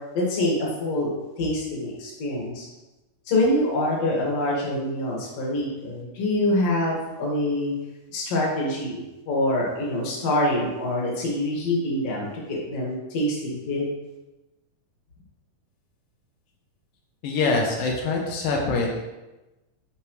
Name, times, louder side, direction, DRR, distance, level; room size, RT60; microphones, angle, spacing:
voice 1, 0.1-1.1 1.4-2.7 3.3-7.7 8.1-13.8, left 1 dB, 50° left, -3 dB, 2.6 m, -25 dB
voice 2, 17.2-19.0, left 3 dB, 85° left, 0 dB, 2.7 m, -24 dB
10.0 x 5.1 x 3.1 m, 1.1 s
omnidirectional pair, 3.9 m